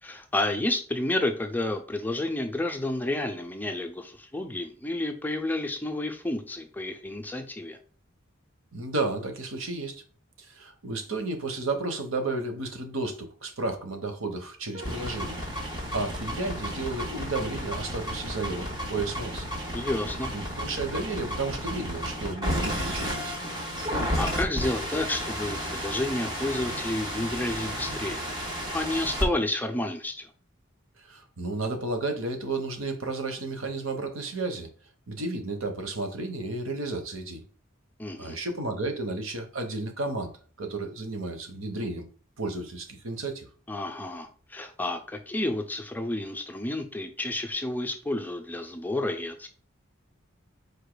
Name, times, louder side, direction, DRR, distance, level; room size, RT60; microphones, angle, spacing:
voice 1, 0.0-7.8 19.7-20.3 24.2-28.2 28.7-30.3 38.0-38.4 43.7-49.5, left 1 dB, 10° left, 0.5 m, -30 dB
voice 2, 8.7-10.0 10.4-15.4 15.9-19.4 20.3-23.4 31.0-34.7 35.1-37.4 38.2-40.3 40.6-42.1 42.4-43.5, right 3 dB, 80° right, 1.1 m, -32 dB
sound 1, 14.7-29.3, equal, 20° right, 1.3 m, -32 dB
5.0 x 4.7 x 2.2 m
head